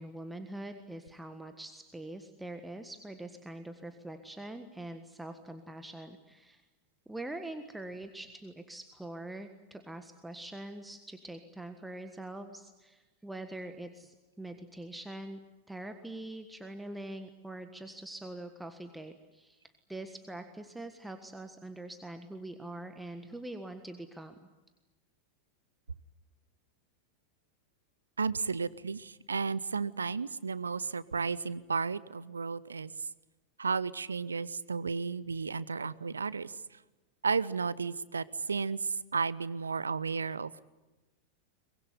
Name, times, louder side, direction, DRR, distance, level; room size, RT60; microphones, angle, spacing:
voice 1, 0.0-6.6 7.1-15.4 15.7-19.6 19.9-24.3, right 1 dB, 5° right, 7 dB, 1.5 m, -44 dB
voice 2, 28.2-32.9 33.6-36.5 37.2-40.6, right 5 dB, 75° right, 20 dB, 0.8 m, -33 dB
24.0 x 21.0 x 9.7 m, 1.1 s
figure-of-eight pair, 90°, 0 cm